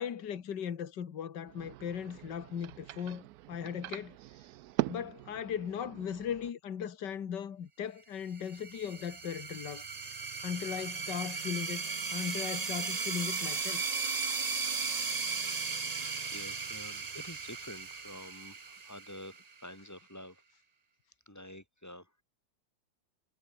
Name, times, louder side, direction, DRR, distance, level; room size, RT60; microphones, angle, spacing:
voice 1, 0.0-4.2 4.9-9.8 10.4-11.8 12.1-13.8, left 8 dB, 60° left, 2.2 m, -38 dB
sound 1, 1.4-6.5, right 16 dB, 90° right, 0.8 m, -41 dB
sound 2, 8.4-19.6, right 5 dB, 35° right, 0.6 m, -36 dB
voice 2, 16.0-19.3 19.6-20.4 21.3-22.2, left 1 dB, 10° left, 2.6 m, -48 dB
omnidirectional pair, 2.2 m